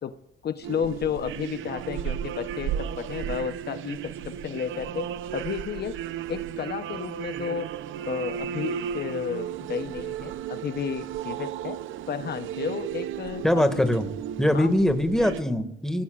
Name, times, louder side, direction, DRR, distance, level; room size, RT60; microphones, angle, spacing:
voice 1, 0.4-5.1 5.3-5.9 6.3-7.7 8.1-11.8 12.1-13.4 13.7-13.9 14.5-14.7, left 7 dB, 55° left, 10 dB, 0.9 m, -32 dB
sound 1, 0.6-15.4, right 9 dB, 80° right, 0.7 m, -34 dB
voice 2, 13.4-14.0 14.4-16.0, left 1 dB, ahead, 7 dB, 1.9 m, -22 dB
24.5 x 17.0 x 2.5 m, 0.83 s
cardioid pair, 90°, 20 cm